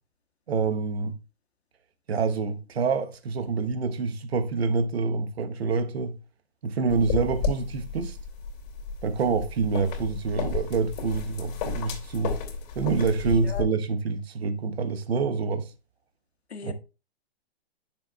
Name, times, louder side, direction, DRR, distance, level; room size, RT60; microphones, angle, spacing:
voice 1, 0.5-1.2 2.1-6.2 6.6-8.2 9.0-12.3 12.7-15.7 16.6-16.7, right 4 dB, 75° right, 1.2 m, -27 dB
sound 1, 6.9-13.6, left 5 dB, 45° left, 2.8 m, -33 dB
voice 2, 13.2-13.7 16.5-16.7, left 5 dB, 85° left, 1.7 m, -38 dB
10.0 x 6.9 x 2.3 m
hypercardioid pair, 125°, 31 cm